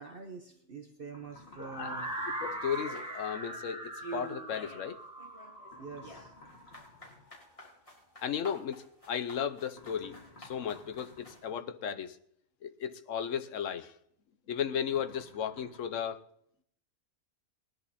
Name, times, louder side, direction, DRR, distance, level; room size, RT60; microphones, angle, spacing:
voice 1, 0.0-2.2 5.8-6.3, right 4 dB, 50° right, 4 dB, 1.2 m, -45 dB
sound 1, 1.1-2.9 5.6-7.3 9.7-11.7 14.8-16.0, left 2 dB, 55° left, 2.8 m, -55 dB
sound 2, 1.6-7.5, right 1 dB, 5° right, 3.3 m, -41 dB
voice 2, 2.4-5.0 8.2-12.2 12.6-13.9 14.5-16.2, left 8 dB, 80° left, 12 dB, 1.2 m, -35 dB
sound 3, 2.7-3.6 4.0-4.9 5.2-11.5, right 2 dB, 25° left, 3.7 m, -48 dB
20.0 x 11.0 x 4.2 m, 0.70 s
omnidirectional pair, 1.3 m